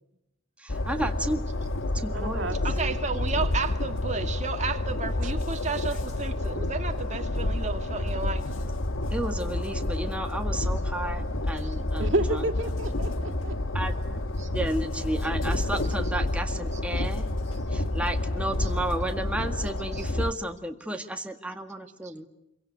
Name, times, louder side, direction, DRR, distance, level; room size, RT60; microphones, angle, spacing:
voice 1, 0.6-1.5 1.9-2.6 9.1-12.5 13.7-14.2 14.5-17.3 17.7-22.3, right 1 dB, 5° right, 1.9 m, -32 dB
Train, 0.7-20.3, left 1 dB, 85° left, 1.5 m, -29 dB
voice 2, 2.1-2.9 5.2-5.3 12.0-13.8, right 2 dB, 70° right, 2.7 m, -31 dB
voice 3, 2.6-8.6 11.5-11.8 14.4-14.5 19.9-20.0 22.0-22.2, right 4 dB, 40° right, 2.1 m, -33 dB
27.0 x 24.0 x 8.2 m
head